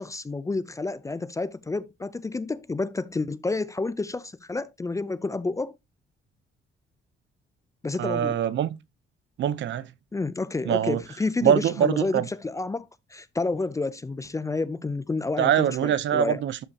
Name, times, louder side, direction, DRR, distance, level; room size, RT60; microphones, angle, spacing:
voice 1, 0.0-5.7 7.8-8.4 10.1-16.4, left 3 dB, 15° left, 0.4 m, -30 dB
voice 2, 8.0-8.8 9.4-9.9 10.7-11.0 11.4-12.3 15.4-16.6, right 10 dB, 65° right, 0.7 m, -23 dB
12.0 x 5.5 x 2.8 m
cardioid pair, 155°, 20 cm